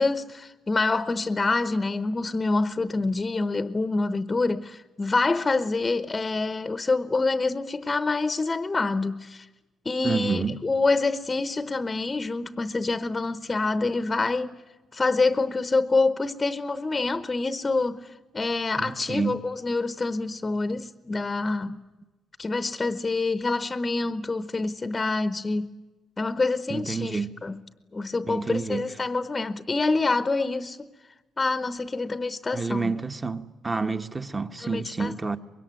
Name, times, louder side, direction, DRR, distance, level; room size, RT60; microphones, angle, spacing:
voice 1, 0.0-9.5 9.8-14.6 14.9-21.8 22.4-25.8 26.2-27.6 27.9-30.9 31.4-32.9 34.6-35.1, left 3 dB, 25° left, 0.9 m, -26 dB
voice 2, 10.0-10.6 18.8-19.4 26.7-27.3 28.2-28.8 32.5-35.4, right 4 dB, 20° right, 1.3 m, -29 dB
24.5 x 22.0 x 9.5 m
cardioid pair, 90°, 0 cm